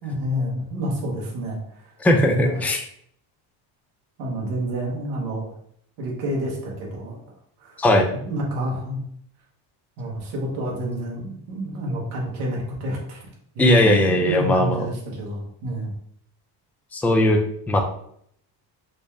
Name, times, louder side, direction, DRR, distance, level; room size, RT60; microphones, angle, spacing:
voice 1, 0.0-1.9 2.4-2.7 4.2-5.5 6.0-7.2 7.6-7.8 8.3-9.0 10.0-13.2 13.5-15.9, right 1 dB, 85° right, -2 dB, 1.3 m, -29 dB
voice 2, 2.0-2.8 7.8-8.1 13.6-14.9 16.9-17.4 17.7-17.8, left 1 dB, 5° left, 3 dB, 0.4 m, -18 dB
4.0 x 2.1 x 3.4 m, 0.67 s
supercardioid pair, 90°, 50 cm